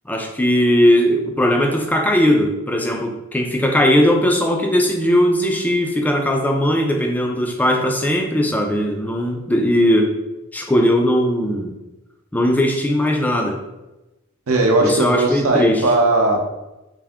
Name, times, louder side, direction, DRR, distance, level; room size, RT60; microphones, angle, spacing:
voice 1, 0.1-10.1 10.5-11.7 12.3-13.6 14.8-15.8, equal, 5° left, 2 dB, 0.3 m, -18 dB
voice 2, 14.5-16.5, right 2 dB, 65° right, 1 dB, 0.7 m, -17 dB
3.4 x 2.6 x 3.5 m, 0.99 s
head